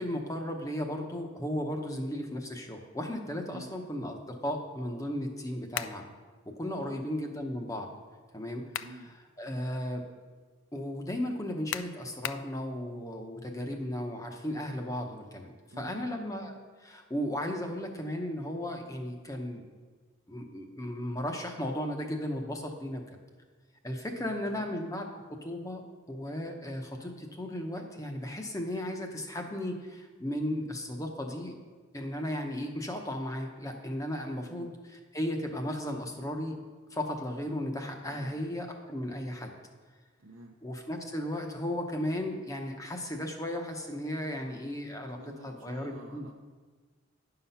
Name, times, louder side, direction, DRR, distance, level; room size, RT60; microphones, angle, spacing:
voice 1, 0.0-6.1 6.5-7.9 8.3-8.9 9.4-10.0 10.7-19.6 20.3-23.1 23.8-25.1 25.4-25.8 26.1-31.6 31.9-34.7 35.1-36.6 36.9-39.5 40.6-45.2 45.4-46.3, left 1 dB, 15° left, 3 dB, 0.8 m, -35 dB
sound 1, 5.7-6.0 8.4-9.0 9.5-9.6 11.7-12.5, left 11 dB, 65° left, 0.3 m, -36 dB
voice 2, 8.8-9.1 15.7-16.1 24.1-24.7 34.5-34.7 38.1-38.4 40.2-40.6 45.2-46.3, right 1 dB, 70° right, -1 dB, 0.7 m, -49 dB
10.5 x 5.8 x 5.6 m, 1.4 s
head